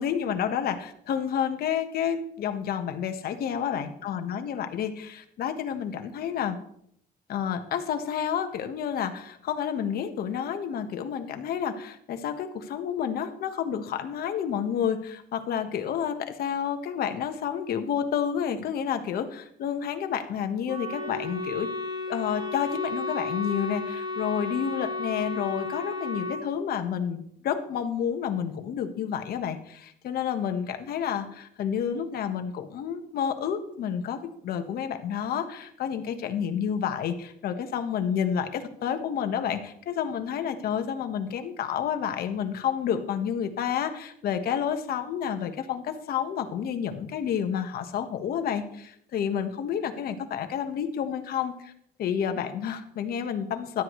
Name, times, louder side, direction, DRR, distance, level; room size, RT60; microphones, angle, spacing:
voice 1, 0.0-6.6 7.3-21.7 22.1-51.7 52.0-53.8, left 8 dB, 65° left, 7 dB, 1.5 m, -30 dB
Wind instrument woodwind instrument, 20.7-26.4, left 3 dB, 25° right, 2.0 m, -33 dB
17.5 x 12.0 x 3.2 m, 0.69 s
cardioid pair, 110°, 17 cm